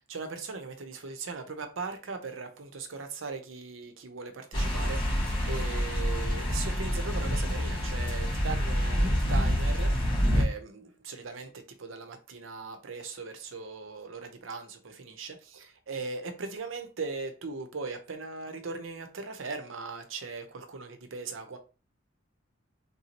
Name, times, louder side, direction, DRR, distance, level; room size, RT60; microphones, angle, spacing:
voice 1, 0.1-21.6, right 4 dB, 75° right, 0.7 m, -39 dB
sound 1, 4.5-10.4, equal, 25° left, 1.6 m, -27 dB
3.5 x 2.7 x 2.9 m
head